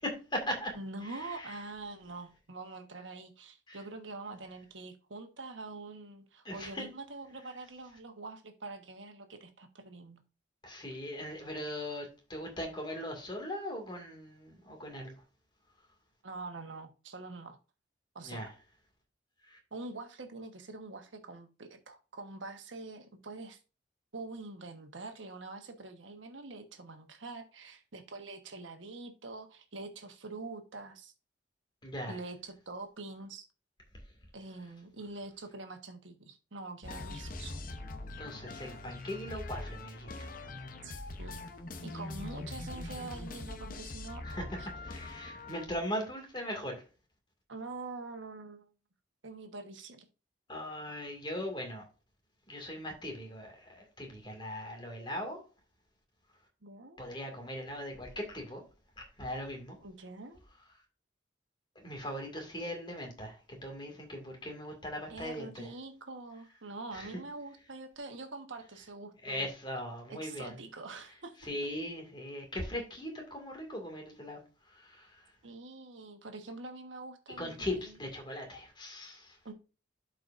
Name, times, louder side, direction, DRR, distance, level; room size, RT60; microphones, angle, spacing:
voice 1, 0.0-0.7 1.0-1.6 3.7-3.8 4.3-4.4 6.4-6.9 10.6-15.1 18.2-18.5 19.5-19.6 31.8-32.2 38.2-40.4 44.2-44.4 44.8-46.8 50.5-51.8 52.5-55.4 57.0-58.6 59.0-59.8 61.8-65.7 66.9-67.2 69.2-70.6 71.4-74.4 74.7-75.3 77.4-79.4, left 1 dB, 25° left, 2.1 m, -39 dB
voice 2, 0.7-10.2 16.2-17.6 18.1-18.5 19.7-23.6 24.1-31.1 32.1-33.5 34.3-37.5 40.8-40.9 41.2-41.4 41.8-44.7 47.5-48.7 49.2-50.1 56.6-57.0 59.8-60.4 65.1-69.5 70.1-71.4 75.4-78.0 79.4-79.5, right 3 dB, 90° right, 1.2 m, -45 dB
sound 1, 36.8-45.7, left 2 dB, 45° left, 0.8 m, -42 dB
12.0 x 4.9 x 2.6 m
head